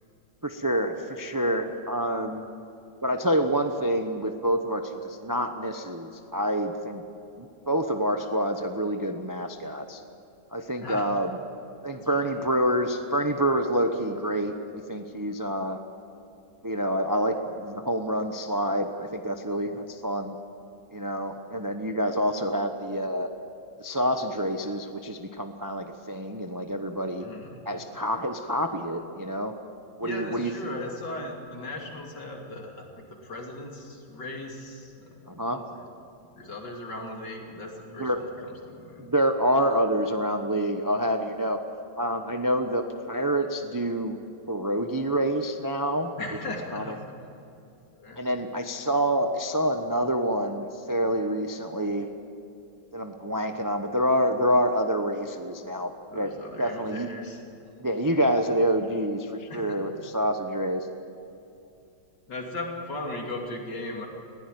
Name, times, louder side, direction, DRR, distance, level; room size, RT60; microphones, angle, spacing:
voice 1, 0.4-2.5 3.0-7.0 7.4-10.0 10.5-11.4 11.8-15.8 16.6-20.3 20.9-23.3 23.8-27.2 27.7-29.5 30.0-30.5 35.3-35.6 37.9-38.2 39.0-41.6 42.0-44.2 44.5-46.1 46.7-46.9 48.2-52.1 52.9-56.3 56.6-57.1 57.8-60.9, equal, 20° right, 6 dB, 0.5 m, -27 dB
voice 2, 11.9-12.3 27.2-27.6 30.0-35.9 36.3-39.1 46.2-47.3 47.7-48.2 56.1-57.4 59.5-59.8 62.3-64.1, left 1 dB, 65° left, 0 dB, 3.4 m, -38 dB
20.5 x 16.0 x 9.4 m, 2.7 s
omnidirectional pair, 2.0 m